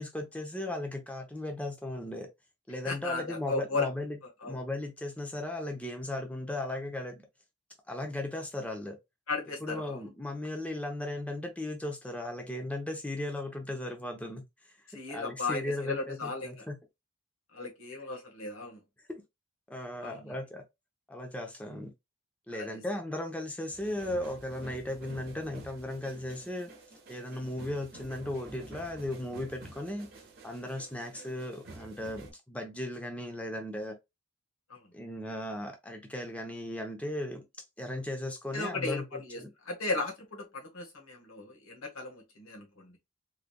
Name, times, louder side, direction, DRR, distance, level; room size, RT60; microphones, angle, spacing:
voice 1, 0.0-2.3 2.7-7.3 7.9-9.0 9.6-14.8 15.1-16.8 19.7-20.6 21.1-21.9 22.5-26.7 27.1-30.1 30.4-34.0 34.9-37.4 37.8-39.5, left 1 dB, 5° left, 0.6 m, -36 dB
voice 2, 2.8-3.9 4.4-4.5 9.3-10.0 14.9-16.6 17.5-18.8 20.0-20.3 22.5-22.7 34.7-34.8 38.5-39.4 39.6-43.0, left 3 dB, 85° left, 1.4 m, -36 dB
sound 1, 23.7-32.3, right 2 dB, 50° right, 1.1 m, -50 dB
3.7 x 3.2 x 2.2 m
head